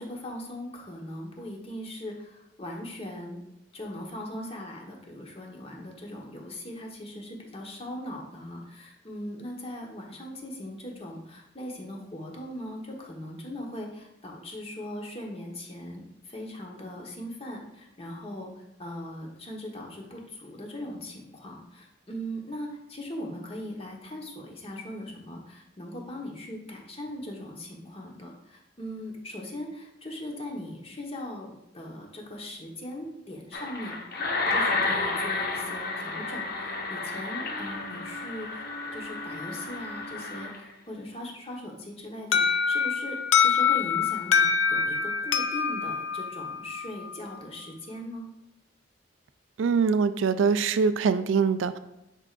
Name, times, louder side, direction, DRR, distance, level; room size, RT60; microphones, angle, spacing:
voice 1, 0.0-3.4 3.7-33.9 34.5-38.6 38.9-48.3, left 1 dB, 30° left, 0 dB, 1.1 m, -39 dB
sound 1, 33.5-40.7, left 3 dB, 55° left, 0.8 m, -31 dB
Alarm, 42.3-47.1, left 6 dB, 80° left, 0.5 m, -25 dB
voice 2, 49.6-51.8, right 5 dB, 90° right, 11 dB, 0.4 m, -23 dB
9.8 x 4.6 x 2.5 m, 0.90 s
head